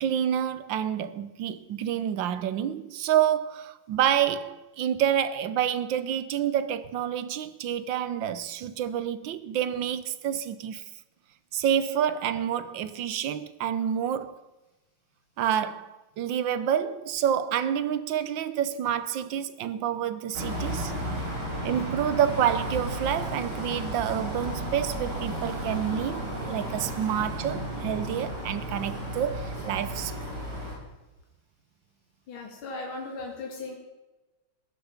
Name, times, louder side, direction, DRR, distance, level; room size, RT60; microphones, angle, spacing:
voice 1, 0.0-10.8 11.5-14.4 15.4-20.9 21.6-30.1, right 9 dB, 70° right, 1.4 m, -28 dB
sound 1, 20.3-30.8, right 1 dB, 50° right, 4.3 m, -33 dB
voice 2, 32.3-33.7, left 3 dB, 70° left, 2.9 m, -37 dB
15.5 x 10.5 x 5.7 m
omnidirectional pair, 2.4 m